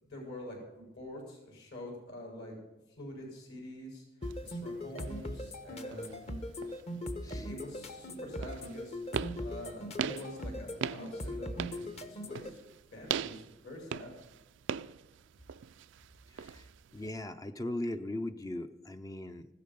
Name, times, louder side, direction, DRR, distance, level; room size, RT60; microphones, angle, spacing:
voice 1, 0.0-2.6 3.0-4.0 4.4-6.2 7.3-12.6 12.9-14.1, left 1 dB, 60° left, -1 dB, 6.0 m, -46 dB
sound 1, 4.2-12.5, left 1 dB, 35° left, 1.1 m, -39 dB
sound 2, 4.2-17.1, right 7 dB, 70° right, 0.4 m, -42 dB
voice 2, 16.3-16.7 16.9-19.5, left 1 dB, 20° left, 8 dB, 0.5 m, -39 dB
15.5 x 13.0 x 5.4 m, 0.99 s
head